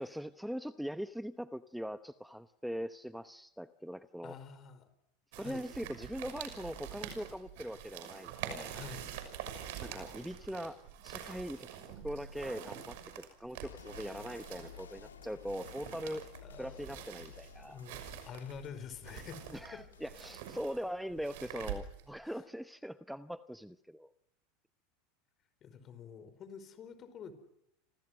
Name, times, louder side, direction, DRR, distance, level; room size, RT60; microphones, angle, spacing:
voice 1, 0.0-4.4 5.3-8.7 9.8-11.7 12.0-16.3 16.6-17.8 19.5-24.1, equal, ahead, 13 dB, 0.9 m, -41 dB
voice 2, 4.2-4.9 5.4-5.6 8.7-9.1 16.4-17.0 17.6-19.8 22.2-22.4 25.6-27.3, left 7 dB, 35° left, 12 dB, 5.0 m, -48 dB
sound 1, 5.3-22.2, right 9 dB, 65° right, 6.2 m, -46 dB
sound 2, 13.6-20.5, left 7 dB, 80° left, 3.2 m, -54 dB
29.5 x 26.0 x 6.4 m, 0.79 s
hypercardioid pair, 85°, 0 cm